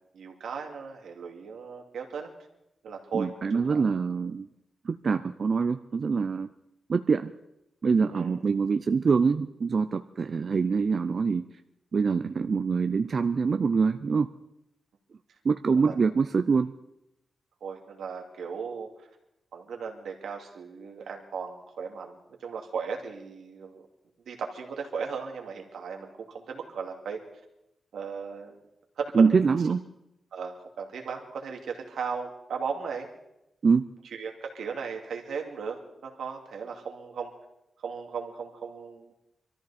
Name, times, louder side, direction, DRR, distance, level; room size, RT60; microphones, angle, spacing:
voice 1, 0.1-2.3 2.8-3.8 8.1-8.4 15.8-15.9 17.6-18.9 19.5-23.9 24.3-27.2 27.9-28.6 29.0-29.3 30.3-33.1 34.1-37.3 37.8-39.1, right 6 dB, 90° right, 2 dB, 2.3 m, -36 dB
voice 2, 3.1-4.5 4.8-6.5 6.9-7.3 7.8-11.5 11.9-14.3 15.4-16.7 29.1-29.8 33.6-33.8, right 5 dB, 45° right, 8 dB, 0.5 m, -24 dB
23.5 x 14.0 x 4.2 m, 0.85 s
wide cardioid pair, 120°, 0 cm